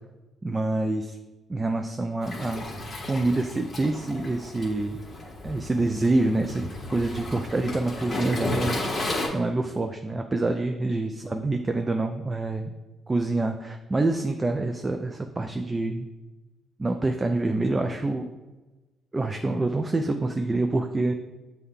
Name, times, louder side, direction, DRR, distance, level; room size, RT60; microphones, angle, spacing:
voice 1, 0.4-1.2 1.5-2.6 3.1-5.0 5.4-8.8 9.3-12.7 13.1-16.1 16.8-18.3 19.1-21.1, right 2 dB, 20° right, 5 dB, 0.3 m, -26 dB
Waves surf, 2.2-9.3, left 2 dB, 35° left, 1.1 m, -33 dB
6.3 x 2.2 x 3.6 m, 1.2 s
cardioid pair, 90°, 0 cm